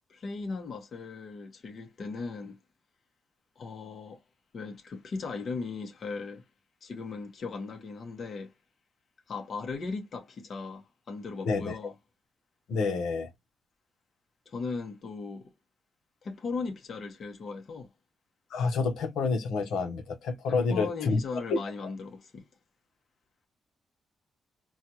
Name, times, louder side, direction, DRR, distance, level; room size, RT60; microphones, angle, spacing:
voice 1, 0.1-2.6 3.6-4.2 4.5-6.4 6.8-8.5 9.3-11.9 14.5-15.5 16.2-17.9 20.4-22.5, left 4 dB, 50° left, 1.1 m, -38 dB
voice 2, 12.7-13.3 18.5-21.2 21.5-21.6, left 4 dB, 85° left, 1.0 m, -28 dB
4.3 x 2.4 x 2.8 m
cardioid pair, 85°, 0 cm